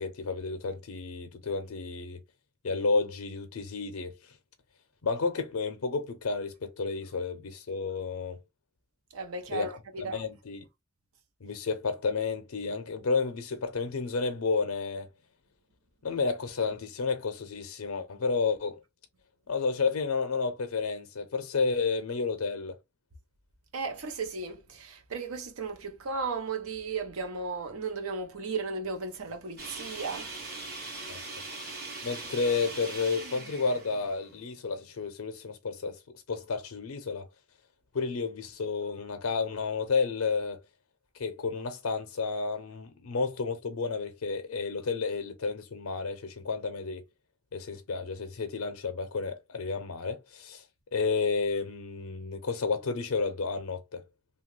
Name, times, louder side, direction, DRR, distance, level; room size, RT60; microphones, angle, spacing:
voice 1, 0.0-2.2 2.6-4.1 5.0-8.4 9.5-9.7 10.0-10.6 11.4-15.1 16.0-18.8 19.5-22.8 31.1-31.2 32.0-36.0 36.3-37.3 37.9-40.6 41.2-47.0 47.5-50.6 50.9-54.0, left 4 dB, 85° left, 0.5 m, -31 dB
voice 2, 9.1-10.3 23.7-30.3, right 4 dB, 90° right, 0.7 m, -35 dB
sound 1, 29.6-34.8, right 3 dB, 50° right, 1.3 m, -41 dB
2.8 x 2.3 x 3.0 m
head